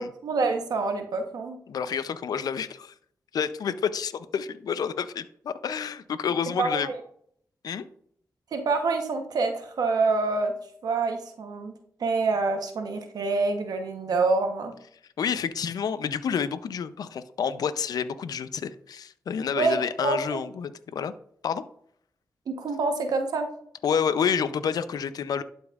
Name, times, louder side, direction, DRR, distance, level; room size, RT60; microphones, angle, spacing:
voice 1, 0.0-1.6 6.6-7.0 8.5-10.5 10.8-11.7 12.0-14.7 19.5-20.4 22.5-23.5, right 3 dB, 80° right, 1.0 m, -26 dB
voice 2, 1.7-2.9 3.3-6.9 7.6-7.9 15.2-21.1 21.4-21.6 23.8-25.4, left 7 dB, 80° left, 0.5 m, -29 dB
12.0 x 5.2 x 2.4 m
cardioid pair, 55°, 7 cm